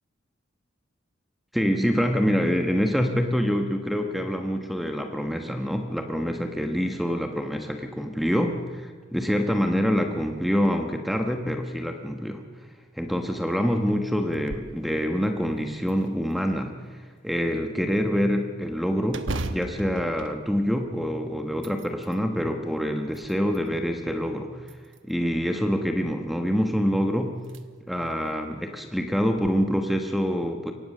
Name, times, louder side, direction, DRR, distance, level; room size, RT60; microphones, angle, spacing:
voice 1, 1.5-8.6 9.1-12.4 13.0-24.5 25.1-27.4 27.9-30.7, equal, ahead, 4 dB, 1.1 m, -26 dB
sound 1, 14.3-14.8 15.2-15.3 15.9-16.7 19.1-21.1 21.5-22.2 22.9-23.7 24.6-25.3 26.7-26.8 27.4-27.6 28.1-28.2 29.2-29.5, right 2 dB, 70° right, 1.1 m, -37 dB
23.5 x 18.0 x 6.7 m, 1.5 s
head